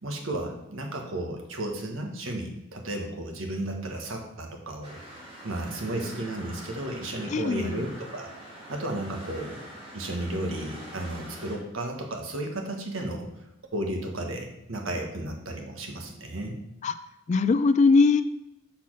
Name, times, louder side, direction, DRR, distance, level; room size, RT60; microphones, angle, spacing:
voice 1, 0.0-5.0 5.4-8.3 8.7-9.6 9.9-13.3 13.7-16.6, right 1 dB, 80° right, 3 dB, 1.3 m, -33 dB
sound 1, 4.8-11.6, right 1 dB, 30° right, 2.0 m, -44 dB
voice 2, 7.3-7.8 16.8-17.0 17.3-18.2, left 4 dB, 35° left, 12 dB, 0.3 m, -21 dB
6.1 x 4.2 x 6.1 m, 0.87 s
head